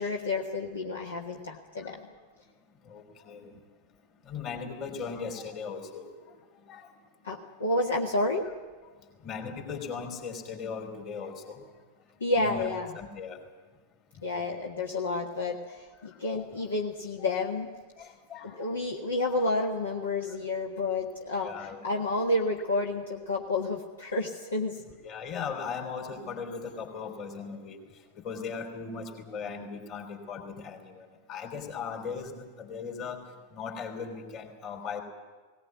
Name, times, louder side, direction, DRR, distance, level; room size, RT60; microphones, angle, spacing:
voice 1, 0.0-2.0 7.2-8.5 12.2-12.9 14.2-17.7 18.4-24.8, left 2 dB, 70° left, 0 dB, 1.7 m, -30 dB
voice 2, 2.9-3.5 4.3-6.1 6.7-6.9 9.2-11.6 12.4-12.7 12.9-13.4 16.1-16.6 18.0-18.7 21.4-22.0 25.0-27.8 28.2-33.2 33.5-35.0, left 5 dB, 35° left, 3 dB, 3.7 m, -38 dB
19.0 x 19.0 x 9.3 m, 1.3 s
figure-of-eight pair, 90°, 0 cm